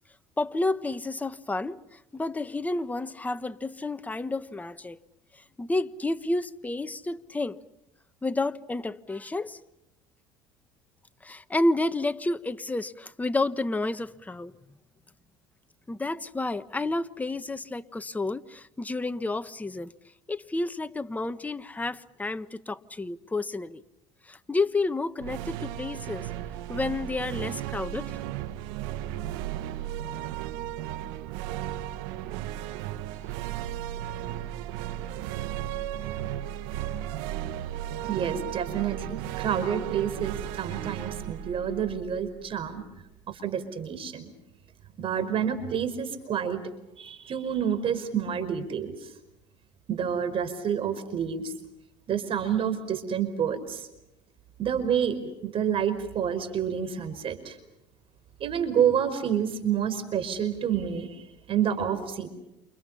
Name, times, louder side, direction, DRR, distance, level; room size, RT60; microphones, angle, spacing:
voice 1, 0.4-5.0 5.6-7.6 8.2-9.6 11.2-14.5 15.9-19.9 20.3-23.8 24.3-26.3 26.7-28.2, left 2 dB, 10° left, 1.3 m, -30 dB
sound 1, 25.2-42.6, right 12 dB, 85° right, 1.8 m, -35 dB
voice 2, 38.1-42.8 43.3-44.3 45.0-46.6 47.0-48.9 49.9-51.5 52.1-53.9 54.6-57.6 58.4-62.3, right 8 dB, 45° right, 5.0 m, -28 dB
29.5 x 29.0 x 5.6 m
supercardioid pair, 105°, 12 cm